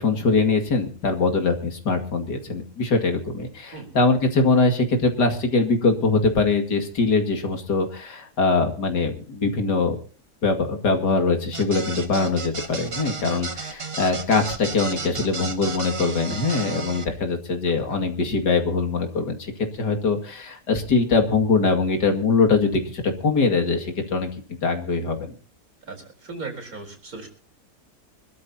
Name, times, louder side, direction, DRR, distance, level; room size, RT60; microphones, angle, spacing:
voice 1, 0.0-10.0 10.4-19.5 19.8-24.3 24.6-25.3, left 4 dB, 90° left, 4 dB, 2.9 m, -22 dB
sound 1, 11.5-17.0, right 4 dB, 40° right, 1.7 m, -33 dB
voice 2, 25.9-27.3, right 3 dB, 60° right, 4 dB, 4.7 m, -37 dB
25.0 x 13.0 x 2.9 m, 0.40 s
omnidirectional pair, 1.7 m